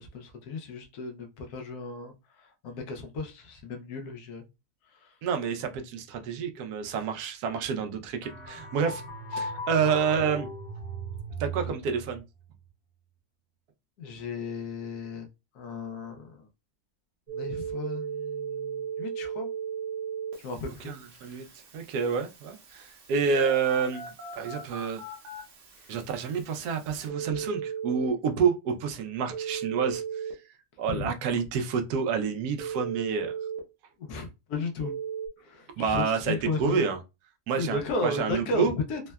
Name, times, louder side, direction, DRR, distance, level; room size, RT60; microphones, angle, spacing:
voice 1, 0.0-2.1 2.4-4.5 5.0-5.1 10.2-10.3 14.0-15.3 15.5-16.5 17.3-19.5 20.4-21.4 30.9-31.1 34.0-34.9 35.4-36.8 37.5-39.0, left 3 dB, 85° left, 1.2 m, -35 dB
voice 2, 5.2-9.0 9.3-10.5 11.4-12.2 20.8-21.5 21.7-24.1 24.4-25.0 25.9-30.0 30.8-33.3 35.8-37.0 37.5-38.7, right 6 dB, 90° right, 1.1 m, -28 dB
sound 1, 8.2-12.2, right 1 dB, 60° left, 1.2 m, -37 dB
Telephone, 17.3-28.1 29.3-30.3 32.6-33.6 34.8-35.3, right 7 dB, 60° right, 1.0 m, -37 dB
3.6 x 2.1 x 2.2 m
omnidirectional pair, 1.6 m